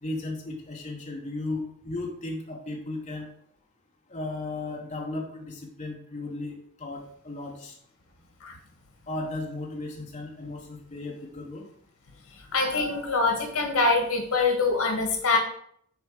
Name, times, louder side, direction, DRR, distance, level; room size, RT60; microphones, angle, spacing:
voice 1, 0.0-3.3 4.1-7.7 9.1-11.7, left 2 dB, 35° left, 0 dB, 1.2 m, -35 dB
voice 2, 12.5-15.4, left 3 dB, 80° left, 3 dB, 1.9 m, -24 dB
7.0 x 4.3 x 6.5 m, 0.64 s
head